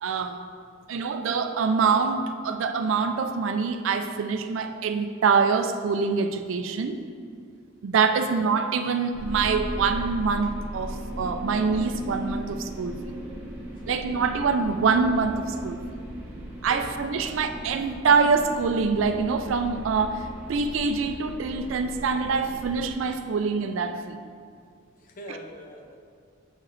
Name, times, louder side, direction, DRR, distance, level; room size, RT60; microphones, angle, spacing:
voice 1, 0.0-0.4 0.9-7.0 7.8-12.9 13.9-15.8 16.6-24.2 25.3-25.4, right 5 dB, 70° right, 7 dB, 0.4 m, -25 dB
sound 1, 9.1-23.0, equal, 10° right, 1.0 m, -37 dB
voice 2, 16.7-17.3 25.0-26.0, left 1 dB, 45° left, 3 dB, 0.6 m, -43 dB
7.4 x 4.7 x 3.1 m, 2.2 s
head